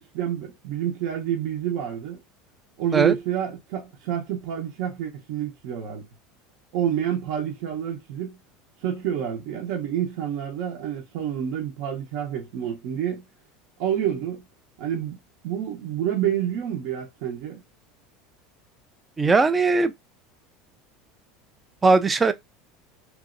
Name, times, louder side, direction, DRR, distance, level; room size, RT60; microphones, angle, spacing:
voice 1, 0.0-2.2 2.8-6.0 6.7-8.4 8.8-13.2 13.8-14.4 14.8-15.2 15.4-17.6, right 10 dB, 60° right, 0.7 m, -28 dB
voice 2, 19.2-19.9 21.8-22.3, right 3 dB, 15° right, 0.3 m, -19 dB
2.9 x 2.6 x 2.5 m
supercardioid pair, 160°, 0 cm